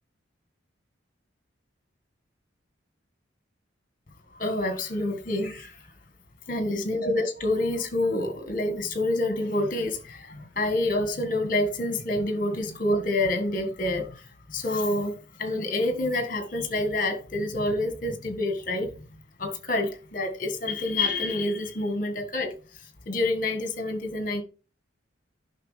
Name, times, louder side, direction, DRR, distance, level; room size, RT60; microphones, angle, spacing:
voice 1, 4.4-5.8 6.5-14.2 14.5-18.9 19.4-22.5 23.1-24.4, left 2 dB, 40° left, 1.5 m, -27 dB
10.5 x 5.9 x 3.3 m
head